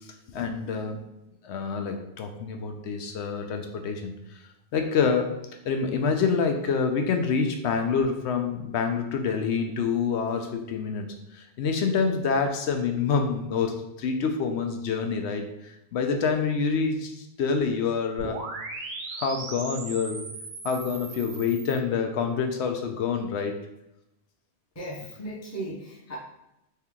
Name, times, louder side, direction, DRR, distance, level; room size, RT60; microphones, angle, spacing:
voice 1, 0.3-1.0 1.4-4.4 4.7-5.3 5.6-18.4 19.1-20.2 20.6-23.5, left 5 dB, 75° left, 5 dB, 0.8 m, -27 dB
sound 1, 18.2-21.8, right 3 dB, 65° right, 0.9 m, -38 dB
voice 2, 24.7-26.2, right 1 dB, 15° left, -4 dB, 0.7 m, -36 dB
3.3 x 2.9 x 3.6 m, 0.89 s
omnidirectional pair, 1.2 m